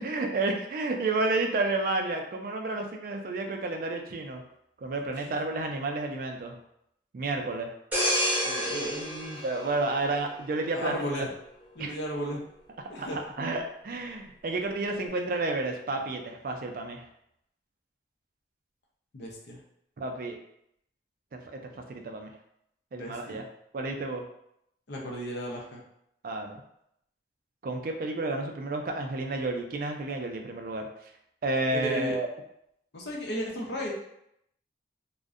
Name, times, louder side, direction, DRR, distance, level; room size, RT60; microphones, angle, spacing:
voice 1, 0.0-4.4 4.8-6.6 7.1-7.7 9.4-11.3 11.8-11.9 13.0-17.0 20.0-20.4 21.3-22.3 22.9-23.4 23.7-24.2 26.2-26.6 27.6-30.9 31.4-32.3, right 2 dB, 50° right, 3 dB, 0.3 m, -31 dB
sound 1, 7.9-10.6 11.1-11.3, equal, 10° right, 0.8 m, -30 dB
voice 2, 8.4-9.4 10.7-11.3 11.7-12.4 12.9-13.2 19.1-19.6 22.9-23.4 24.9-25.8 31.7-32.1 32.9-33.9, equal, 70° left, -2 dB, 0.6 m, -34 dB
2.6 x 2.1 x 2.4 m, 0.76 s
head